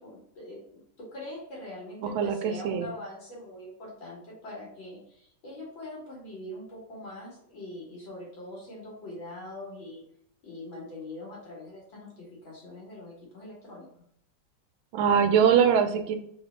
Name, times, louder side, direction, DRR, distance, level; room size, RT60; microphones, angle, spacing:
voice 1, 0.0-10.0 10.4-13.9, left 1 dB, 70° left, -4 dB, 2.3 m, -43 dB
voice 2, 2.1-2.9 14.9-16.2, right 7 dB, 80° right, 7 dB, 1.4 m, -22 dB
4.0 x 3.5 x 3.2 m, 0.68 s
omnidirectional pair, 2.2 m